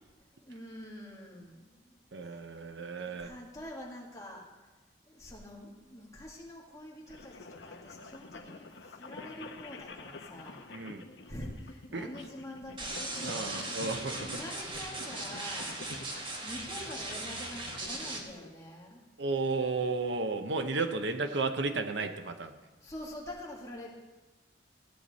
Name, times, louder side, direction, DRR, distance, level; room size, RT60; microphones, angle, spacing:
voice 1, 0.2-2.5 2.9-4.7 5.1-10.7 11.3-13.9 14.3-15.8 16.4-19.0 22.8-23.9, left 1 dB, 15° left, -3 dB, 1.9 m, -46 dB
voice 2, 2.1-3.3 10.7-11.0 11.9-12.1 13.2-14.3 19.2-22.6, right 3 dB, 75° right, 7 dB, 0.8 m, -33 dB
sound 1, 7.1-18.5, left 3 dB, 75° left, 0.9 m, -48 dB
sound 2, 12.8-18.2, right 2 dB, 25° right, 1.2 m, -38 dB
15.0 x 8.8 x 4.2 m, 1.2 s
head